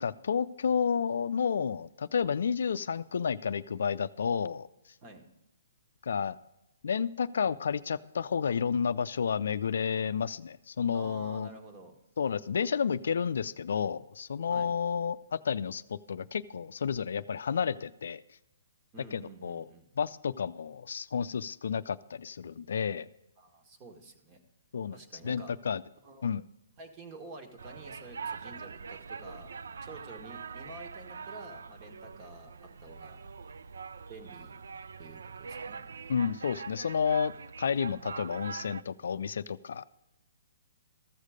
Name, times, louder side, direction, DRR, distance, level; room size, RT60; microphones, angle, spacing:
voice 1, 0.0-4.7 6.0-6.4 6.8-11.5 12.2-18.2 19.1-19.7 20.0-23.1 24.7-25.0 25.2-25.8 26.2-26.4 36.1-37.3 37.6-39.8, left 6 dB, 75° left, 15 dB, 0.4 m, -31 dB
voice 2, 10.9-12.0 14.5-14.7 18.9-19.9 23.4-24.4 24.9-25.5 26.0-26.3 26.8-29.5 29.8-33.2 34.1-34.6 35.0-35.8, right 2 dB, 30° right, 5 dB, 1.6 m, -49 dB
sound 1, 27.6-38.8, right 5 dB, 80° right, 0.4 m, -43 dB
14.0 x 6.5 x 5.0 m, 0.90 s
hypercardioid pair, 140°, 0 cm